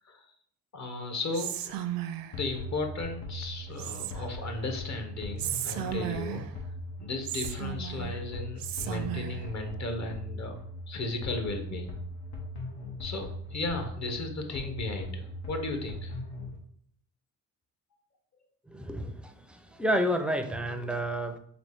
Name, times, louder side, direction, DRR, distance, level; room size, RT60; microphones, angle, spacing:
voice 1, 0.7-1.8 2.4-6.4 7.0-10.6 10.9-11.9 13.0-16.2, left 2 dB, 45° left, 5 dB, 0.9 m, -35 dB
Whispering, 1.3-2.4 3.8-4.5 5.4-6.6 7.3-8.2 8.6-9.5, right 11 dB, 65° right, 0.5 m, -35 dB
sound 1, 2.3-16.6, left 1 dB, 85° left, 1.1 m, -40 dB
voice 2, 18.7-21.4, equal, 5° right, 6 dB, 0.4 m, -30 dB
4.0 x 3.0 x 3.4 m, 0.66 s
supercardioid pair, 70°, 38 cm